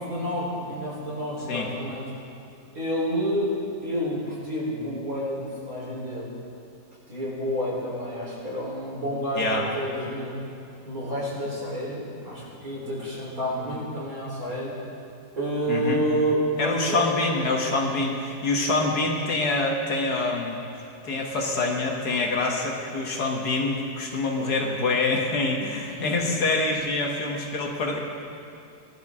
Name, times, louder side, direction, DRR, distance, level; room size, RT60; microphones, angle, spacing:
voice 1, 0.0-2.1 2.7-6.3 7.1-10.4 10.8-14.7 15.3-17.1 25.9-26.4, equal, 50° right, -6 dB, 4.3 m, -29 dB
voice 2, 15.7-16.0 16.6-20.6 21.0-28.1, left 3 dB, 65° left, 0 dB, 1.8 m, -26 dB
19.0 x 12.0 x 3.6 m, 2.7 s
omnidirectional pair, 1.9 m